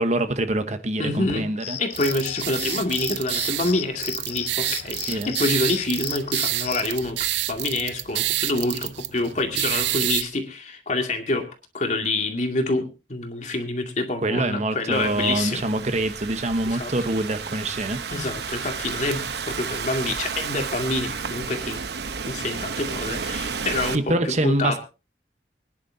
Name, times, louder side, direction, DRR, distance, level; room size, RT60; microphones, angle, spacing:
voice 1, 0.0-1.8 5.1-5.3 14.2-18.0 23.9-24.8, right 1 dB, 40° right, 1.1 m, -25 dB
voice 2, 1.0-1.5 1.8-11.5 11.7-15.6 16.6-16.9 18.1-21.8 22.2-24.8, left 2 dB, 45° left, 2.3 m, -27 dB
sound 1, 1.6-6.9, left 11 dB, 65° left, 0.9 m, -35 dB
sound 2, 1.9-10.2, right 15 dB, 85° right, 0.6 m, -28 dB
Thunderstorm / Rain, 14.9-24.0, right 5 dB, 65° right, 0.9 m, -32 dB
24.5 x 10.5 x 2.7 m
head